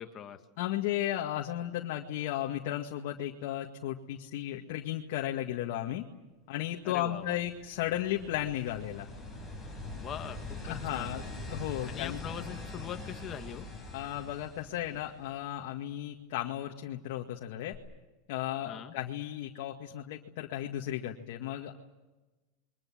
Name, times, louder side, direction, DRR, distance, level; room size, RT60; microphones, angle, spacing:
voice 1, 0.0-0.4 6.8-7.5 10.0-11.1 11.9-13.7 18.7-18.9, left 9 dB, 25° left, 7 dB, 1.8 m, -42 dB
voice 2, 0.6-6.0 6.5-9.1 10.6-11.2 11.5-12.2 13.9-17.7 18.3-21.8, left 12 dB, 60° left, 1 dB, 2.0 m, -35 dB
sound 1, 7.1-15.6 17.7-17.8, left 2 dB, ahead, 6.1 m, -43 dB
29.0 x 23.0 x 7.7 m, 1.1 s
supercardioid pair, 160°, 0 cm